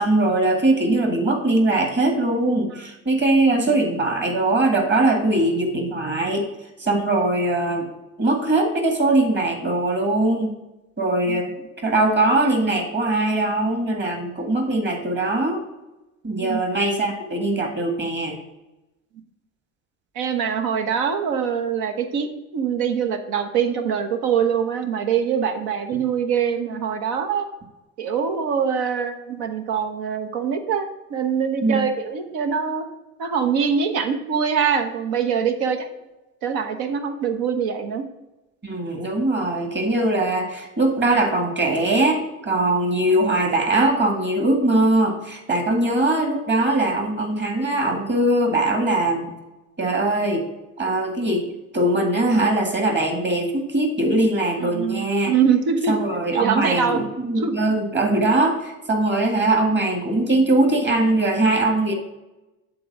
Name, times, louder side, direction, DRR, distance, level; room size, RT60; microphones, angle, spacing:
voice 1, 0.0-6.5 6.8-7.9 8.2-10.5 11.0-11.5 11.8-15.6 16.2-18.4 25.9-26.0 31.6-31.8 38.6-49.3 49.8-50.4 50.8-51.4 51.7-55.3 55.9-61.9, right 2 dB, 25° right, 3 dB, 2.1 m, -21 dB
voice 2, 20.1-27.5 28.0-32.8 33.2-35.9 36.4-38.0 54.6-55.9 56.3-57.0 57.4-57.5, right 7 dB, 60° right, 6 dB, 1.2 m, -23 dB
7.8 x 3.9 x 6.1 m, 1.0 s
hypercardioid pair, 75°, 42 cm